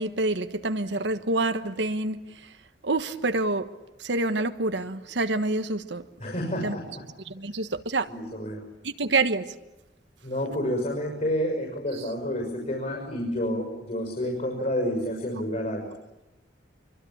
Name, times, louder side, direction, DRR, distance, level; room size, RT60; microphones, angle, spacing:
voice 1, 0.0-2.2 2.8-3.7 4.0-6.0 6.6-6.8 7.3-8.1 8.8-9.5, right 2 dB, 75° right, 1.3 m, -27 dB
voice 2, 6.2-7.0 8.1-8.6 10.2-15.8, equal, 45° left, 6.3 m, -29 dB
25.5 x 24.5 x 8.8 m
head